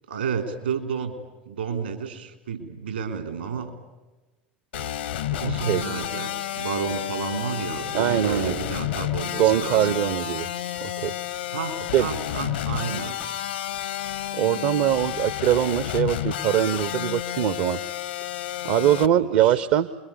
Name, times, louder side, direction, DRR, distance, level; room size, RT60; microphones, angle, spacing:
voice 1, 0.1-1.2 1.5-3.7 5.3-10.0 11.5-13.2 19.0-19.6, right 6 dB, 75° right, 6 dB, 3.5 m, -31 dB
sound 1, 4.7-19.1, left 12 dB, 70° left, 1.0 m, -31 dB
voice 2, 5.4-5.9 7.9-8.6 9.4-10.5 10.8-11.2 11.9-12.1 14.3-17.8 18.6-19.9, right 11 dB, 50° right, 14 dB, 0.8 m, -22 dB
29.0 x 22.5 x 8.4 m, 1.2 s
figure-of-eight pair, 75°, 6 cm